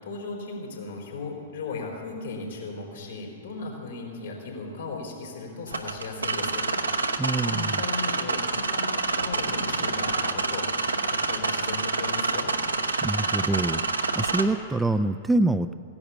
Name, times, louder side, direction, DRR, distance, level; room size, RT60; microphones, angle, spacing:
voice 1, 0.0-6.7 7.4-12.5, left 3 dB, 70° left, -1 dB, 4.1 m, -36 dB
sound 1, 5.7-14.4, right 3 dB, 85° right, 0.9 m, -27 dB
voice 2, 7.2-7.8 13.0-13.8 14.2-15.7, right 2 dB, 5° right, 11 dB, 0.3 m, -25 dB
16.0 x 10.5 x 7.1 m, 2.5 s
figure-of-eight pair, 105°, 0 cm